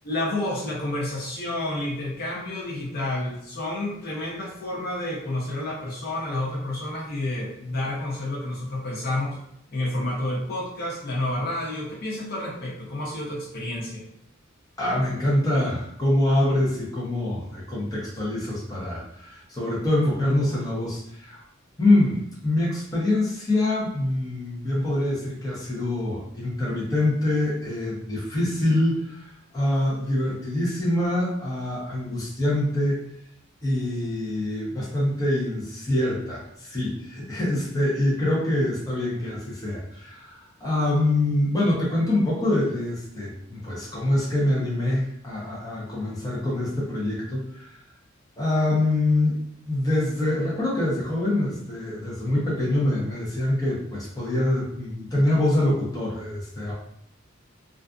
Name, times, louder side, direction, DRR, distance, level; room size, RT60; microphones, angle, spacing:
voice 1, 0.0-9.4 9.7-14.0, left 1 dB, 50° left, -5 dB, 0.6 m, -30 dB
voice 2, 14.8-21.4 21.8-33.0 33.6-47.8 48.4-49.4 49.6-56.7, left 1 dB, 20° left, -7 dB, 0.7 m, -25 dB
2.4 x 2.4 x 2.3 m, 0.75 s
head